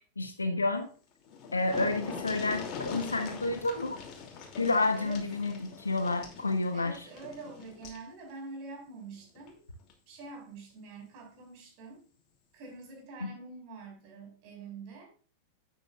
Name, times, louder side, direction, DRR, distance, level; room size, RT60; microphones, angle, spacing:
voice 1, 0.2-0.9 1.5-4.0 4.6-6.9 13.2-13.3, left 2 dB, 80° left, 6 dB, 1.5 m, -30 dB
sound 1, 0.9-1.0 1.2-8.1 9.4-9.5 9.9-10.0, left 6 dB, 40° left, 2.7 m, -43 dB
voice 2, 2.0-2.5 4.9-5.2 6.7-9.6 10.1-12.0 12.5-15.1, right 3 dB, 45° right, 1 dB, 5.6 m, -46 dB
12.0 x 9.1 x 2.4 m, 0.40 s
figure-of-eight pair, 90°, 0 cm